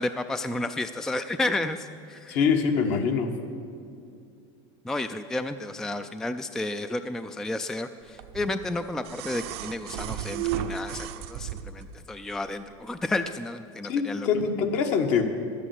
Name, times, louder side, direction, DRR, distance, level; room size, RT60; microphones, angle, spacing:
voice 1, 0.0-2.4 4.8-14.3, left 2 dB, 5° left, 10 dB, 0.3 m, -32 dB
voice 2, 2.3-3.3 13.9-15.2, left 6 dB, 60° left, 5 dB, 1.3 m, -24 dB
sound 1, 8.2-12.0 13.2-13.3, right 9 dB, 75° right, 0.7 m, -34 dB
11.5 x 8.5 x 7.5 m, 2.4 s
supercardioid pair, 125°, 14 cm